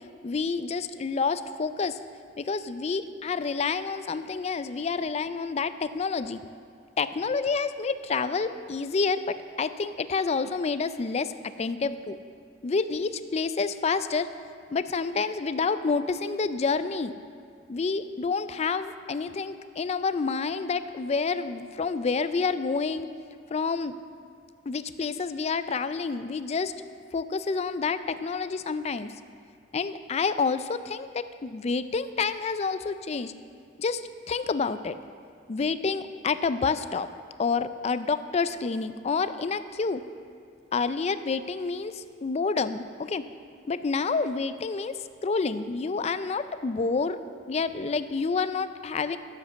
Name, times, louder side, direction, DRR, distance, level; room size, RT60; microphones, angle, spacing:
voice 1, 0.2-2.0 2.4-6.4 7.0-12.2 12.6-14.3 14.7-17.1 17.7-23.1 23.5-23.9 24.7-26.7 27.1-29.1 29.7-33.3 33.8-35.0 35.5-37.1 37.4-40.0 40.7-43.2 43.7-47.2 47.5-49.2, left 4 dB, 35° left, 12 dB, 0.4 m, -28 dB
11.0 x 7.3 x 6.2 m, 2.2 s
head